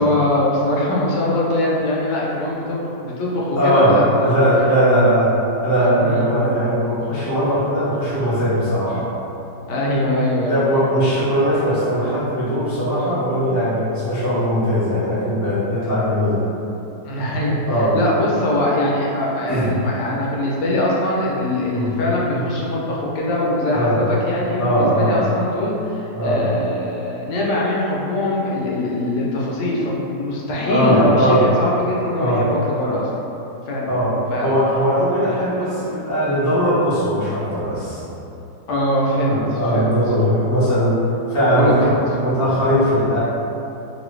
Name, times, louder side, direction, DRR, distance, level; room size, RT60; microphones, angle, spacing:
voice 1, 0.0-4.4 6.0-6.2 9.7-10.6 17.0-33.1 33.7-33.9 34.3-34.5 38.7-39.4 39.7-40.0 41.5-41.9, left 1 dB, 75° left, -4 dB, 1.2 m, -22 dB
voice 2, 3.6-4.0 4.2-5.3 5.6-9.1 10.5-16.4 17.7-18.0 19.5-19.7 21.6-22.0 22.3-22.5 23.7-24.0 24.6-25.2 26.1-26.4 30.7-31.4 32.1-32.4 33.9-34.1 34.4-38.0 39.3-41.0 41.3-43.2, equal, 20° left, -11 dB, 0.4 m, -19 dB
3.1 x 2.6 x 3.1 m, 2.8 s
omnidirectional pair, 1.9 m